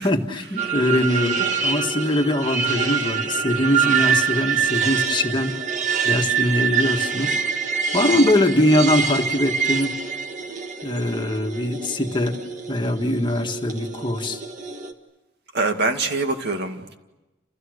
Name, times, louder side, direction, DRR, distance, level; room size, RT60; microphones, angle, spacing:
voice 1, 0.0-5.6 6.0-7.4 7.9-10.0 10.8-12.4 12.7-14.4, left 1 dB, 25° left, 1.8 m, -22 dB
sound 1, 0.6-14.9, right 6 dB, 40° right, 1.9 m, -25 dB
voice 2, 15.5-17.0, right 3 dB, 55° right, 2.3 m, -24 dB
29.5 x 29.5 x 6.6 m
head